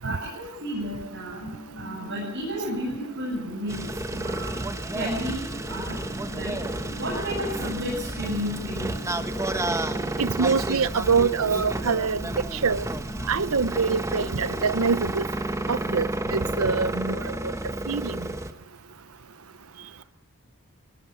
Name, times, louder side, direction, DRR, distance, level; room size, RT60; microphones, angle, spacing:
voice 1, 0.0-1.4 1.8-4.6 4.9-5.4 5.7-5.9 6.3-6.5 7.0-8.9, equal, 55° right, 8.0 m, -32 dB
sound 1, 0.8-12.7, equal, 30° left, 3.8 m, -43 dB
sound 2, 3.7-18.5, right 1 dB, 15° right, 1.2 m, -31 dB
voice 2, 10.2-12.2 12.6-12.8 13.3-15.3 15.7-17.2 17.9-18.2, right 5 dB, 75° right, 0.8 m, -24 dB
24.0 x 17.5 x 9.0 m
head